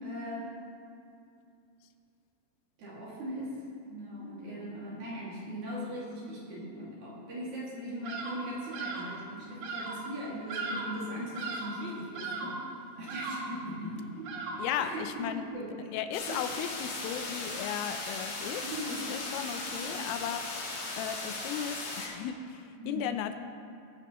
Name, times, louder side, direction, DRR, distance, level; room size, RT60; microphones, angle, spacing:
voice 1, 0.0-0.5 2.8-3.5 3.9-12.6 13.0-14.3 14.8-15.2 15.5-15.7 16.3-16.4 18.6-19.1 19.7-20.0 22.8-23.1, equal, 45° right, -6 dB, 2.9 m, -39 dB
Bird vocalization bird call bird song, 8.0-8.5 8.7-9.2 9.6-10.0 10.5-11.0 11.3-11.8 12.1-12.7 13.1-13.6 14.2-14.8, right 3 dB, 80° right, 2.0 m, -37 dB
voice 2, 14.6-15.5 15.9-20.4 21.0-23.4, left 9 dB, 85° left, 8 dB, 3.2 m, -36 dB
sound 1, 16.1-22.1, left 2 dB, 55° left, 4.2 m, -37 dB
20.0 x 9.0 x 3.0 m, 2.5 s
omnidirectional pair, 5.8 m